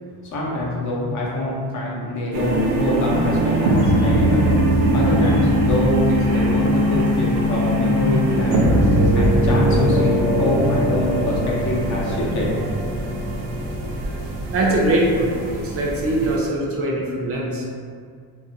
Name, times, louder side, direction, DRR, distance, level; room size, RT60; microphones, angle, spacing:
voice 1, 0.3-12.5, left 1 dB, 45° left, -5 dB, 0.7 m, -24 dB
sound 1, 2.3-16.4, right 1 dB, 90° right, 0.6 m, -20 dB
voice 2, 3.8-4.1 5.3-5.4 14.5-17.7, right 1 dB, 35° right, -3 dB, 0.6 m, -22 dB
2.6 x 2.1 x 2.6 m, 2.1 s
cardioid pair, 110°, 41 cm